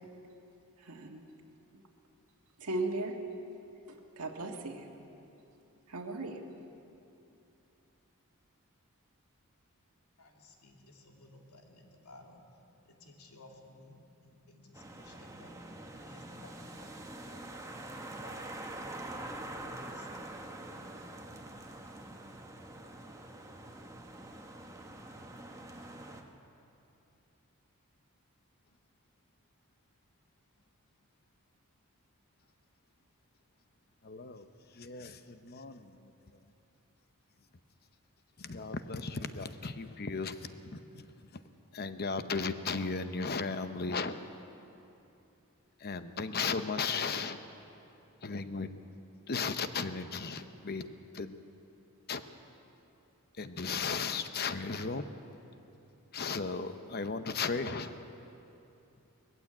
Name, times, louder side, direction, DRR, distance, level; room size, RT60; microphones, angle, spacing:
voice 1, 0.8-1.2 1.7-1.8 2.6-3.2 3.9-4.9 5.9-6.4, right 2 dB, 85° right, 2 dB, 1.7 m, -37 dB
voice 2, 10.2-12.5 12.8-14.0 14.2-15.7 16.0-18.8 19.5-20.1, left 2 dB, 85° left, 1 dB, 2.5 m, -57 dB
sound 1, 14.7-26.2, right 1 dB, 15° right, 1.1 m, -45 dB
voice 3, 34.0-34.5 34.7-36.1 38.4-41.4 41.7-44.2 45.8-47.4 48.2-48.7 49.3-50.8 51.1-51.3 52.1-52.2 53.4-55.1 56.1-58.1, left 4 dB, 45° left, 10 dB, 0.8 m, -36 dB
20.0 x 15.0 x 8.7 m, 2.8 s
head